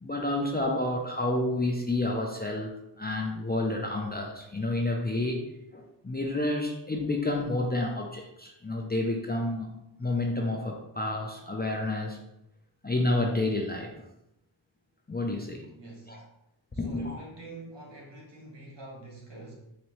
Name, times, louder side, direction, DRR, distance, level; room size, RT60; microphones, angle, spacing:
voice 1, 0.0-5.4 5.7-9.7 10.0-12.2 12.8-13.9 15.1-15.6 16.1-16.2 16.8-17.2, left 2 dB, 20° left, 0 dB, 0.5 m, -29 dB
voice 2, 15.7-16.2 16.7-19.5, right 2 dB, 65° right, -3 dB, 1.5 m, -46 dB
4.1 x 2.7 x 3.1 m, 0.83 s
wide cardioid pair, 60°, 46 cm